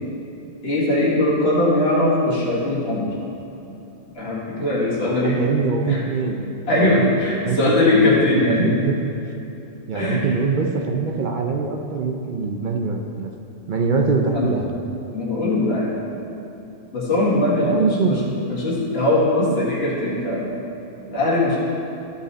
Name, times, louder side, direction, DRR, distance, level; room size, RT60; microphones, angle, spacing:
voice 1, 0.6-3.1 4.1-5.4 5.9-6.0 6.7-8.7 9.9-10.3 14.3-14.5 15.1-15.9 16.9-18.2 18.5-20.5 21.1-21.6, left 2 dB, 55° left, -7 dB, 2.0 m, -20 dB
voice 2, 5.0-9.0 9.9-13.3 13.7-14.7 17.6-18.2, right 4 dB, 50° right, 2 dB, 0.6 m, -24 dB
12.5 x 5.3 x 4.2 m, 3.0 s
omnidirectional pair, 1.3 m